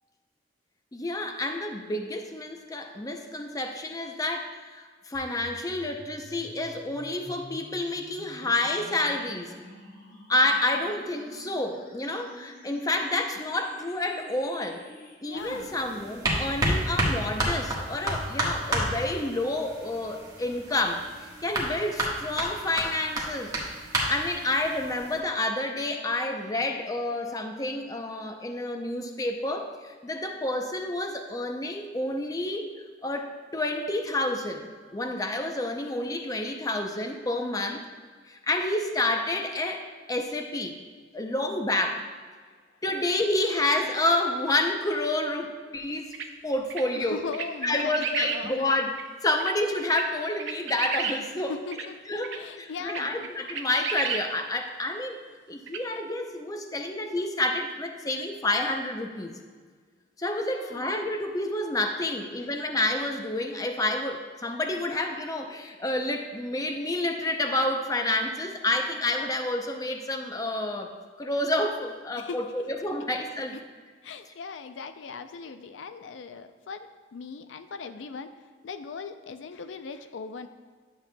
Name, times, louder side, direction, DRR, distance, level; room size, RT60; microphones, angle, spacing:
voice 1, 0.9-9.5 10.3-14.8 15.2-23.6 24.1-32.7 33.0-37.8 38.3-40.8 41.1-42.0 42.8-46.1 46.4-47.2 47.6-48.9 49.2-51.5 52.1-55.2 55.5-59.3 60.2-70.9 71.2-73.6, left 1 dB, 20° left, 4 dB, 0.5 m, -29 dB
sound 1, 5.1-15.2, equal, 55° left, 1.5 m, -49 dB
voice 2, 15.2-15.8 37.6-37.8 46.9-48.7 51.5-51.9 52.3-53.3 60.4-60.9 62.4-62.5 72.2-72.7 74.0-78.3 78.6-80.5, left 4 dB, 85° left, 10 dB, 0.4 m, -39 dB
sound 2, 15.4-25.2, right 1 dB, 20° right, 1.4 m, -31 dB
sound 3, 46.1-46.3 46.7-46.8 47.3-48.4 49.0-49.1 49.4-49.5 49.9-50.0 50.4-51.2 51.7-51.8 52.2-52.4 52.9-54.2 55.7-55.8, right 6 dB, 80° right, 0.7 m, -31 dB
10.5 x 7.4 x 2.2 m, 1.5 s
head